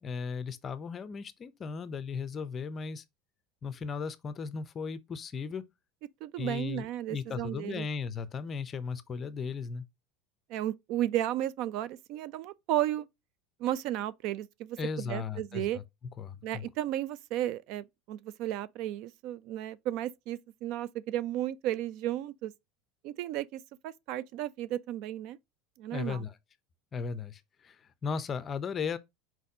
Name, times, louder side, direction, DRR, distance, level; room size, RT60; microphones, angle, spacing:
voice 1, 0.0-3.0 3.6-5.7 6.4-9.8 14.8-15.8 16.2-16.6 25.9-26.4 26.9-29.0, left 5 dB, 20° left, 0.5 m, -36 dB
voice 2, 6.2-7.9 10.5-13.1 13.6-15.8 16.4-22.5 23.0-25.4 25.8-26.2, right 13 dB, 50° right, 0.4 m, -34 dB
4.5 x 4.1 x 2.7 m
supercardioid pair, 155°, 0 cm